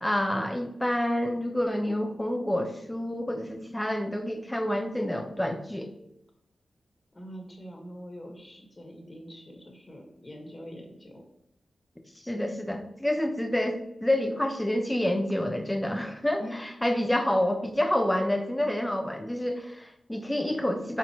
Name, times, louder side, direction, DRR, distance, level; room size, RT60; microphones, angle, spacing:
voice 1, 0.0-5.9 12.2-21.0, left 1 dB, 10° left, 5 dB, 0.9 m, -28 dB
voice 2, 7.1-11.2 16.4-16.6, equal, 35° left, 1 dB, 1.8 m, -43 dB
7.7 x 4.6 x 3.2 m, 0.79 s
cardioid pair, 45°, 0 cm